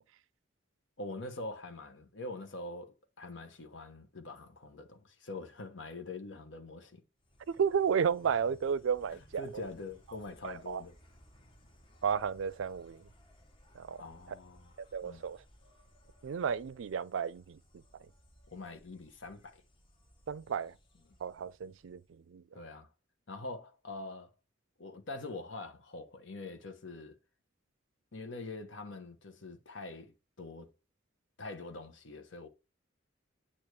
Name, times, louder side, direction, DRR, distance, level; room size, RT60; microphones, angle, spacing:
voice 1, 1.0-7.0 9.4-10.9 14.0-14.7 15.0-15.2 18.5-19.6 22.5-22.9 23.3-24.3 24.8-27.1 28.1-30.7 31.4-32.5, left 2 dB, 75° left, 1.3 m, -44 dB
Insect, 7.2-22.3, equal, 25° left, 1.1 m, -62 dB
voice 2, 7.5-9.6 10.4-10.8 12.0-13.1 13.7-14.0 14.9-15.4 16.2-17.8 20.3-20.7 21.2-22.6, right 7 dB, 80° right, 0.4 m, -33 dB
8.7 x 3.0 x 4.7 m
head